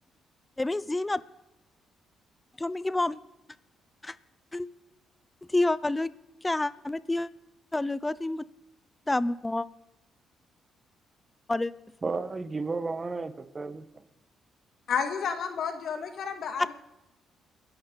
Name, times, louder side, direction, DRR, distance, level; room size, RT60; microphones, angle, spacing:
voice 1, 0.6-1.2 2.6-3.2 4.0-4.1 4.5-4.7 5.5-6.1 6.4-7.3 7.7-8.4 9.1-9.7 11.5-11.7, left 2 dB, 15° left, 17 dB, 0.6 m, -28 dB
voice 2, 12.0-14.0, right 3 dB, 30° right, 11 dB, 1.4 m, -33 dB
voice 3, 14.9-16.7, left 6 dB, 65° left, 6 dB, 2.1 m, -31 dB
29.0 x 11.0 x 4.1 m, 0.94 s
cardioid pair, 90°, 0 cm